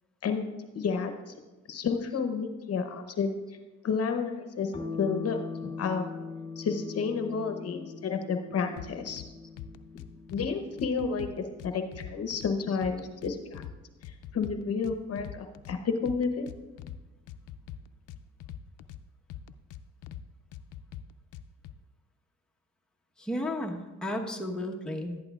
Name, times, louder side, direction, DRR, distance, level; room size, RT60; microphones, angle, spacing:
voice 1, 0.7-1.3 1.7-3.4 3.8-5.4 5.8-6.0 6.6-9.2 10.3-13.6 14.0-16.5, left 5 dB, 55° left, 7 dB, 0.8 m, -31 dB
sound 1, 4.7-13.6, left 4 dB, 20° left, 2.3 m, -42 dB
sound 2, 8.8-9.3 9.6-10.5 10.8-12.5 12.8-13.7 14.0-15.8 16.1-17.0 17.3-19.0 19.3-20.2 20.5-21.7, left 11 dB, 80° left, 0.5 m, -42 dB
voice 2, 23.2-25.2, left 1 dB, 5° left, 0 dB, 1.0 m, -33 dB
11.5 x 10.5 x 2.4 m, 1.2 s
cardioid pair, 90°, 30 cm